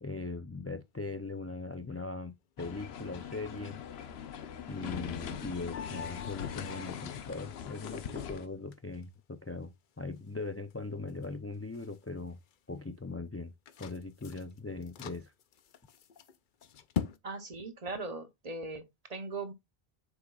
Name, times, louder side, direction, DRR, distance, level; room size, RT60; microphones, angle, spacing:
voice 1, 0.0-4.1 4.7-12.4 12.7-13.5 13.8-15.3, left 3 dB, 25° left, 0.3 m, -40 dB
sound 1, 0.8-17.2, left 8 dB, 55° left, 0.7 m, -47 dB
sound 2, 2.6-8.5, left 8 dB, 75° left, 1.0 m, -41 dB
voice 2, 17.2-19.5, right 3 dB, 40° right, 0.9 m, -39 dB
7.8 x 6.0 x 2.3 m
omnidirectional pair, 1.1 m